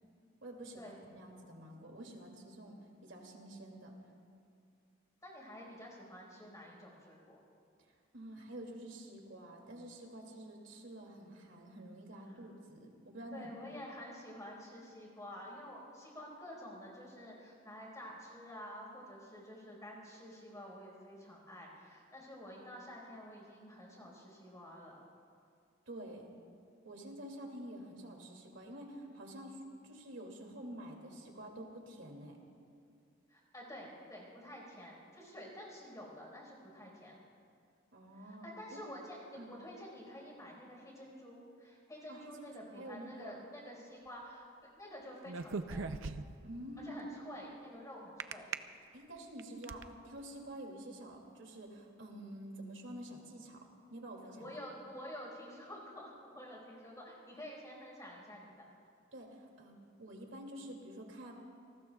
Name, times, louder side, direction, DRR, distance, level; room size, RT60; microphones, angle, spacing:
voice 1, 0.4-4.0 8.1-13.5 25.9-26.2 26.8-32.4 37.9-38.8 39.4-39.5 42.1-42.4 42.7-43.4 46.4-47.0 48.9-53.6 53.9-54.5 59.1-61.3, right 1 dB, 70° right, 1 dB, 2.6 m, -48 dB
voice 2, 5.2-7.4 12.3-12.4 13.3-25.0 33.3-37.2 38.2-44.5 44.7-45.9 46.8-48.5 54.4-58.7, equal, 15° left, -2 dB, 4.7 m, -49 dB
sound 1, 45.3-46.5 48.2-48.6 49.2-49.8, right 4 dB, 85° right, 0.6 m, -39 dB
29.0 x 19.5 x 2.4 m, 2.4 s
head